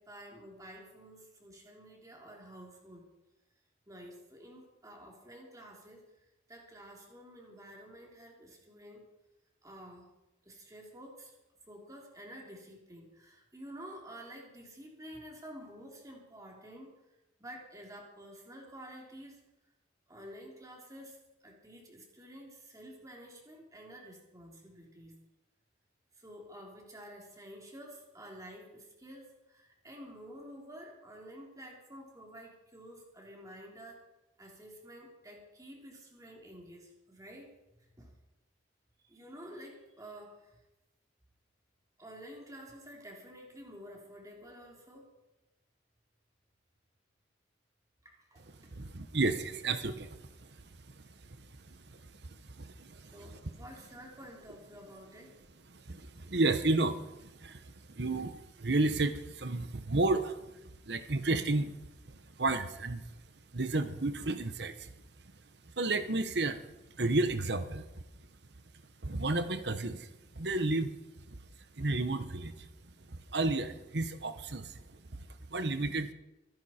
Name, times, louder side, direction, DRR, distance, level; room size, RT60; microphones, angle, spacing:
voice 1, 0.0-3.1 3.9-9.1 9.6-10.1 10.4-11.3 11.7-16.9 17.4-19.4 20.1-25.2 26.1-34.1 34.4-37.6 38.0-38.1 39.0-40.6 42.0-45.1 48.0-48.7 53.1-55.4, equal, 20° right, 0 dB, 3.2 m, -50 dB
voice 2, 48.7-50.5 51.7-53.1 55.7-60.4 60.9-61.7 62.4-63.0 63.5-64.9 65.8-66.6 66.9-67.8 69.0-70.1 70.3-70.9 71.3-71.4 71.8-72.7 73.1-75.2 75.5-76.1, right 2 dB, 60° right, 10 dB, 1.1 m, -32 dB
24.5 x 10.0 x 4.4 m, 0.96 s
head